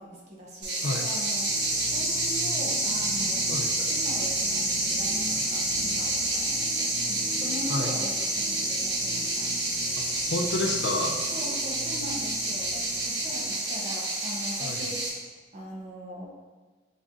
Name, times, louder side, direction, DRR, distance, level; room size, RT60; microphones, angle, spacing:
voice 1, 0.0-9.5 11.3-15.2 15.5-16.3, equal, 35° right, -3 dB, 0.7 m, -40 dB
sound 1, 0.6-15.1, right 2 dB, 70° right, 0.8 m, -28 dB
sound 2, 1.4-13.5, left 1 dB, 45° left, 0.8 m, -44 dB
voice 2, 10.0-11.2 14.6-14.9, left 2 dB, 75° left, 3 dB, 0.4 m, -30 dB
4.2 x 2.5 x 3.6 m, 1.3 s
head